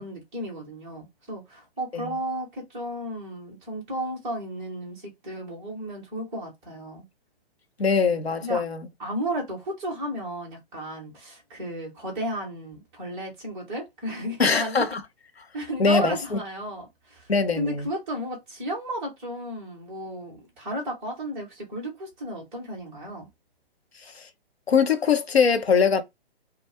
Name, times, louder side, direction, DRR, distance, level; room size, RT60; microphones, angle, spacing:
voice 1, 0.0-7.1 8.4-8.6 9.0-14.8 15.5-23.3, right 1 dB, 5° right, 0.3 m, -33 dB
voice 2, 7.8-8.8 14.4-15.0 15.8-16.4 17.3-17.9 24.2-24.3 24.7-26.0, left 5 dB, 80° left, 0.7 m, -22 dB
2.3 x 2.2 x 2.8 m
figure-of-eight pair, 125°, 31 cm